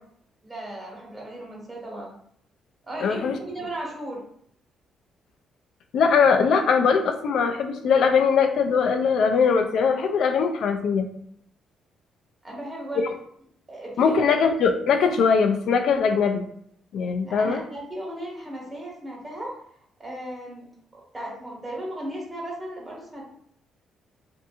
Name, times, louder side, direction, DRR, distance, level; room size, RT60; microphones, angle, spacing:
voice 1, 0.4-2.1 2.8-4.2 12.4-13.0 13.7-14.5 17.2-19.5 20.0-23.2, right 1 dB, 20° right, -4 dB, 1.2 m, -36 dB
voice 2, 3.0-3.4 5.9-11.1 14.0-16.5 16.9-17.6, left 5 dB, 70° left, 5 dB, 0.3 m, -21 dB
2.6 x 2.6 x 2.3 m, 0.67 s
cardioid pair, 90°, 0 cm